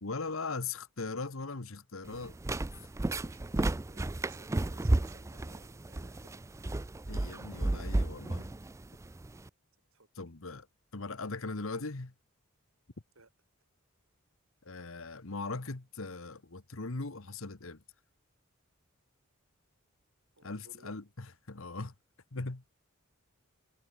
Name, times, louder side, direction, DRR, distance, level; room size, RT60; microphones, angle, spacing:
voice 1, 0.0-2.4 7.1-8.5 10.1-10.7 10.9-12.1 14.6-17.8 20.4-21.9 22.3-22.6, left 3 dB, 65° left, 1.3 m, -39 dB
sound 1, 2.0-9.5, right 2 dB, 15° right, 0.3 m, -33 dB
voice 2, 3.2-6.3 9.9-10.1 13.2-13.3 20.4-20.9, right 4 dB, 70° right, 6.0 m, -60 dB
head